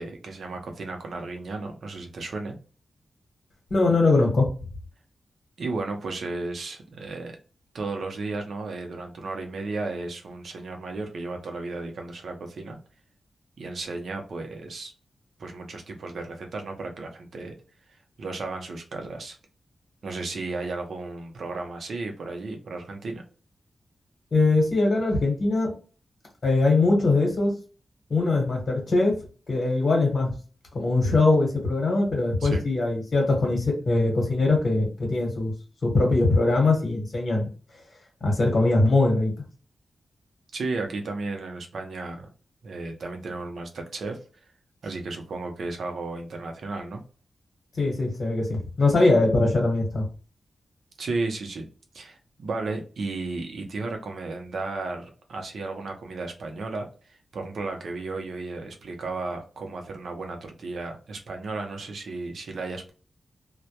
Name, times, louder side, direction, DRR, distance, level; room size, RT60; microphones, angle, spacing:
voice 1, 0.0-2.6 5.6-7.4 7.7-12.8 13.6-14.9 15.4-17.5 17.9-19.4 20.0-23.2 32.4-32.6 40.5-42.3 42.6-44.2 44.8-47.0 51.0-51.7 51.9-62.9, right 3 dB, 75° right, 3 dB, 0.6 m, -34 dB
voice 2, 3.7-4.5 24.3-25.7 26.4-27.5 28.1-29.1 29.5-30.3 30.7-35.5 35.8-37.5 38.2-39.3 47.8-50.0, left 2 dB, 55° left, 0 dB, 1.0 m, -21 dB
2.1 x 2.1 x 2.7 m, 0.38 s
wide cardioid pair, 90°, 0 cm